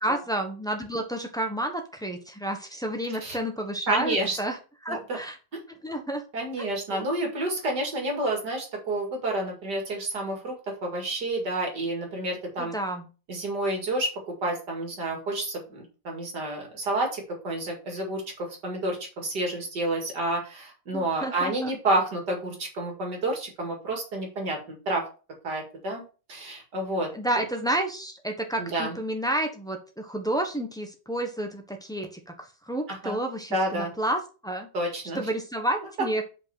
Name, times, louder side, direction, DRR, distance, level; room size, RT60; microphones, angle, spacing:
voice 1, 0.0-4.6 4.8-5.4 5.8-6.2 6.6-6.7 6.9-7.0 12.6-13.1 20.9-21.7 27.1-32.3 32.7-34.7 35.1-36.2, right 1 dB, 5° left, 3 dB, 0.8 m, -30 dB
voice 2, 3.9-4.4 4.9-5.2 6.3-12.7 13.3-25.0 25.4-26.0 26.3-27.1 27.4-27.5 28.6-29.0 32.9-33.2 33.5-33.9 34.7-35.2, right 2 dB, 60° right, 1 dB, 2.6 m, -29 dB
5.7 x 5.1 x 5.8 m, 0.34 s
omnidirectional pair, 2.1 m